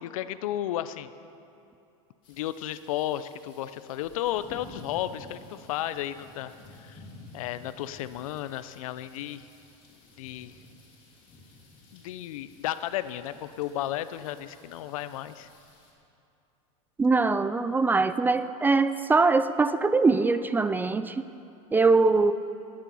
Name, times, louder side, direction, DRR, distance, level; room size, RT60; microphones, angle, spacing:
voice 1, 0.0-1.1 2.3-7.0 7.3-9.5 10.2-10.5 11.9-15.5, left 12 dB, 80° left, 14 dB, 0.6 m, -33 dB
sound 1, 2.2-15.9, left 2 dB, 30° left, 3.2 m, -52 dB
voice 2, 17.0-21.2 21.7-22.3, right 3 dB, 10° right, 12 dB, 0.3 m, -22 dB
18.0 x 8.8 x 5.6 m, 2.7 s
supercardioid pair, 130°, 17 cm